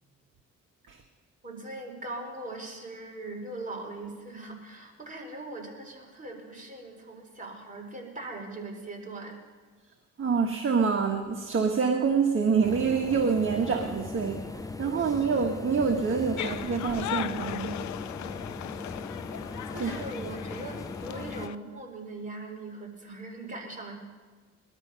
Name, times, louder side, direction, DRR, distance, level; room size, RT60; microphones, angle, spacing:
voice 1, 1.4-9.4 15.0-15.2 19.7-23.9, right 2 dB, 25° right, 0 dB, 4.4 m, -40 dB
voice 2, 10.2-17.8 19.8-20.0, right 5 dB, 40° right, 3 dB, 1.6 m, -26 dB
sound 1, 12.6-21.5, left 3 dB, 10° left, 0.6 m, -39 dB
sound 2, 16.4-21.6, left 14 dB, 70° left, 0.5 m, -37 dB
20.5 x 12.5 x 5.6 m, 1.4 s
cardioid pair, 90°, 30 cm